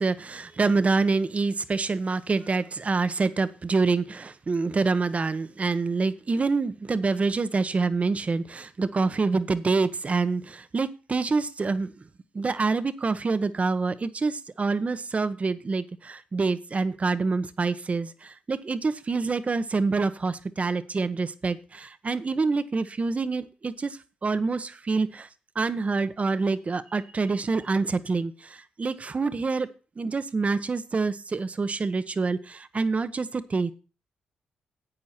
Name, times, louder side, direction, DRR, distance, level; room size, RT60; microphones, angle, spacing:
voice 1, 0.0-11.9 12.3-25.3 25.5-29.7 30.0-33.7, right 4 dB, 40° right, 13 dB, 1.1 m, -26 dB
11.0 x 8.5 x 4.4 m, 0.35 s
supercardioid pair, 50°, 4 cm